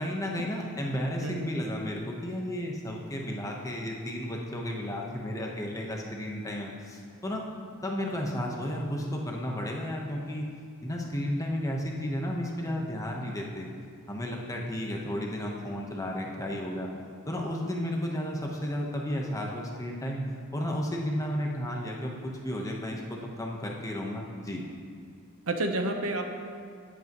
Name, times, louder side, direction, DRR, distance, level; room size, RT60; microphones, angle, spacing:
voice 1, 0.0-7.4 7.8-10.5 10.8-13.7 14.1-16.9 17.3-20.2 20.5-24.6, equal, 15° left, -1 dB, 1.1 m, -33 dB
voice 2, 25.5-26.2, right 2 dB, 80° right, 4 dB, 1.0 m, -30 dB
17.0 x 8.3 x 3.1 m, 2.1 s
head